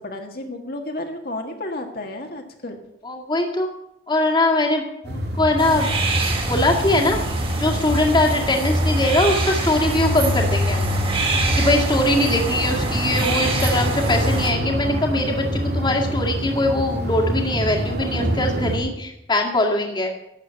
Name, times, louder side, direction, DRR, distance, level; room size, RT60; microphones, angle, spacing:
voice 1, 0.0-2.8, left 1 dB, 60° left, 3 dB, 1.7 m, -32 dB
voice 2, 3.0-3.7 4.1-5.9 6.4-7.2 7.6-10.9 11.6-20.1, left 1 dB, 25° left, 1 dB, 2.0 m, -21 dB
sound 1, 5.0-18.8, equal, 65° right, 2.6 m, -25 dB
sound 2, 5.6-14.5, right 3 dB, 30° right, 2.4 m, -27 dB
12.5 x 8.0 x 8.8 m, 0.85 s
head